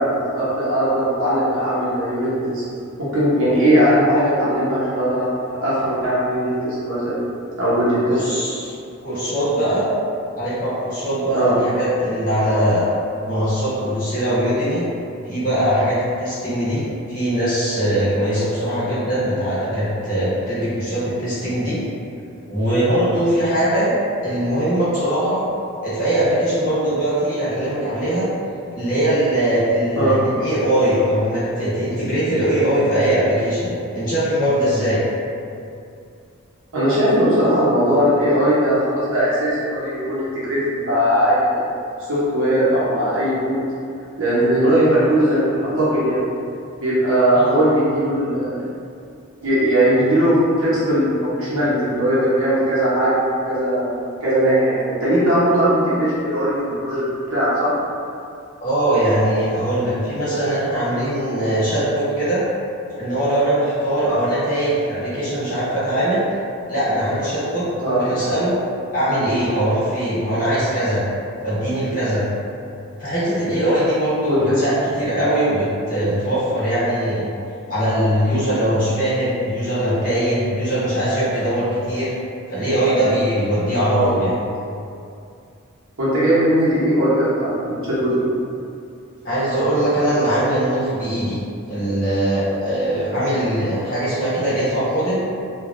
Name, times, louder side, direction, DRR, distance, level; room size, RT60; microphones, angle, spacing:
voice 1, 0.0-2.6 3.0-5.3 5.6-7.2 7.6-8.2 11.3-11.6 30.0-30.2 36.7-41.7 42.0-43.6 44.2-46.2 46.8-48.6 49.4-53.9 54.2-57.0 57.3-57.7 64.0-64.2 67.8-68.0 74.2-74.4 83.9-84.1 86.0-88.2, right 1 dB, 80° right, -10 dB, 0.8 m, -19 dB
voice 2, 8.1-8.7 9.0-9.9 10.4-12.8 13.2-14.8 15.2-16.8 17.1-21.8 22.4-23.9 24.2-25.4 25.8-28.3 28.8-35.0 47.3-47.4 58.6-62.4 63.0-66.2 66.7-68.5 68.9-71.0 71.4-72.3 73.0-77.3 77.7-82.1 82.5-84.3 89.2-91.4 91.7-95.3, right 1 dB, 40° left, -11 dB, 1.1 m, -21 dB
3.3 x 2.3 x 2.5 m, 2.5 s
head